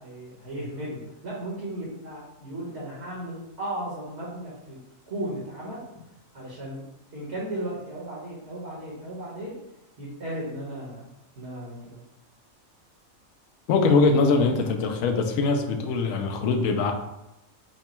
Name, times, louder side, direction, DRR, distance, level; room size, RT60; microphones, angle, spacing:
voice 1, 0.0-4.8 5.1-5.8 6.3-6.8 7.1-9.5 10.0-11.1 11.4-12.0, right 1 dB, 55° right, -6 dB, 1.5 m, -35 dB
voice 2, 13.7-16.9, left 4 dB, 75° left, 4 dB, 1.0 m, -22 dB
5.0 x 2.2 x 4.3 m, 0.89 s
omnidirectional pair, 1.4 m